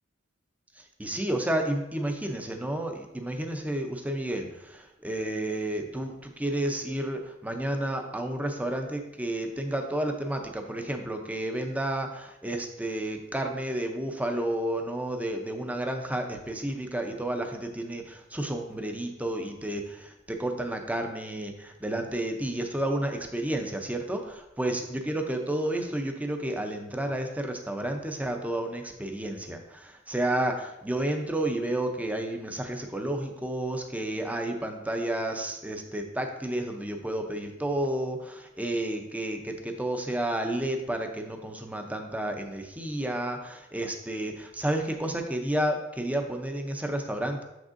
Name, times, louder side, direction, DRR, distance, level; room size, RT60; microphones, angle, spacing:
voice 1, 1.0-47.4, right 1 dB, 10° right, 4 dB, 0.6 m, -31 dB
7.0 x 6.2 x 2.6 m, 0.91 s
head